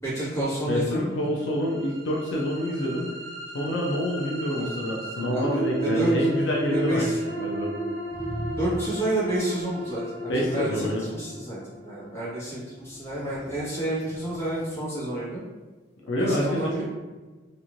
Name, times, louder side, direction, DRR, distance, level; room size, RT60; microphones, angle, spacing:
voice 1, 0.0-1.2 4.5-4.7 5.3-6.1 6.7-7.2 8.6-15.4 16.2-16.8, right 1 dB, 15° left, -11 dB, 1.2 m, -30 dB
voice 2, 0.7-3.1 3.5-7.7 10.3-11.1 16.0-16.8, equal, 70° left, -2 dB, 0.5 m, -27 dB
sound 1, 1.3-13.4, right 2 dB, 70° right, 1.1 m, -33 dB
sound 2, 8.1-10.0 12.8-14.8, equal, 45° left, 1.1 m, -40 dB
3.0 x 2.5 x 2.5 m, 1.3 s
head